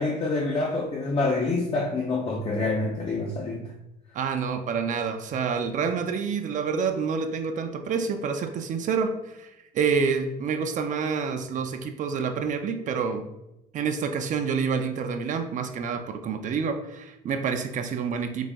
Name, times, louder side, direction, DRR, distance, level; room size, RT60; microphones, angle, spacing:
voice 1, 0.0-3.7, left 3 dB, 35° left, -1 dB, 0.5 m, -27 dB
voice 2, 4.1-13.2 13.7-18.5, right 5 dB, 50° right, 6 dB, 0.4 m, -28 dB
4.0 x 2.5 x 3.4 m, 0.91 s
cardioid pair, 110°, 17 cm